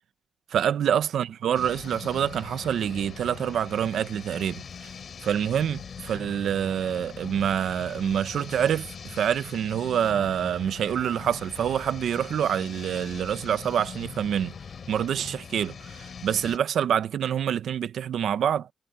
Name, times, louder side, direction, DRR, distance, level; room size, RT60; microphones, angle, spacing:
voice 1, 0.5-4.9 5.2-14.5 14.9-18.7, right 9 dB, 90° right, 0.8 m, -26 dB
sound 1, 1.5-16.6, left 6 dB, 50° left, 6.1 m, -42 dB
wide cardioid pair, 155°, 0 cm